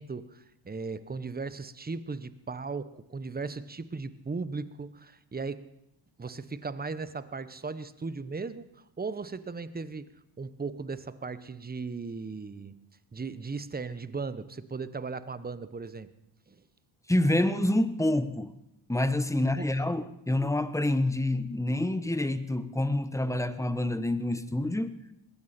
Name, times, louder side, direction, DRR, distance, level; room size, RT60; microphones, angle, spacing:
voice 1, 0.0-5.7 6.2-8.7 9.0-10.1 10.4-12.7 13.1-16.1 16.5-16.6 19.4-20.0, right 4 dB, 20° right, 14 dB, 1.1 m, -37 dB
voice 2, 17.1-18.5 18.9-24.9, left 1 dB, 5° left, 11 dB, 1.2 m, -27 dB
20.5 x 16.0 x 4.4 m, 0.82 s
supercardioid pair, 65°, 48 cm